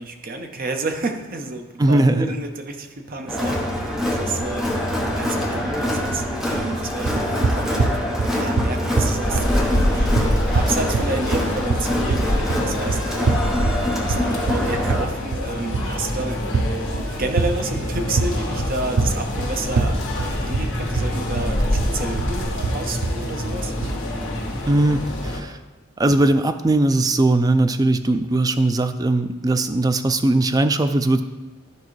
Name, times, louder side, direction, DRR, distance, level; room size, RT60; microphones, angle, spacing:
voice 1, 0.0-4.8 5.2-8.0 8.3-10.2 10.5-13.6 13.9-16.7 17.2-23.7, right 3 dB, 45° right, 5 dB, 0.7 m, -30 dB
voice 2, 1.8-2.3 24.7-25.6 26.0-31.2, right 2 dB, 20° right, 9 dB, 0.3 m, -19 dB
Crowd, 3.3-15.0, left 1 dB, ahead, 1.0 m, -25 dB
sound 1, 7.0-24.0, right 3 dB, 75° right, 0.5 m, -24 dB
sound 2, 9.2-25.4, left 1 dB, 60° left, 1.6 m, -26 dB
13.0 x 4.6 x 3.2 m, 1.1 s
head